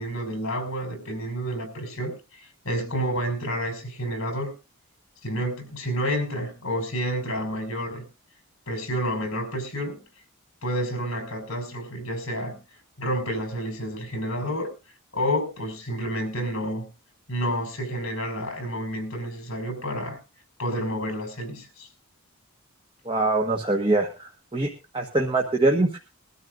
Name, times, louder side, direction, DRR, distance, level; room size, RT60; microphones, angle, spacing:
voice 1, 0.0-4.5 5.2-8.0 8.7-10.0 10.6-12.6 13.0-14.7 15.1-16.9 17.3-20.2 20.6-21.9, equal, 65° left, 5.4 m, -29 dB
voice 2, 23.0-26.0, right 2 dB, 25° right, 1.4 m, -24 dB
22.0 x 12.5 x 2.6 m
head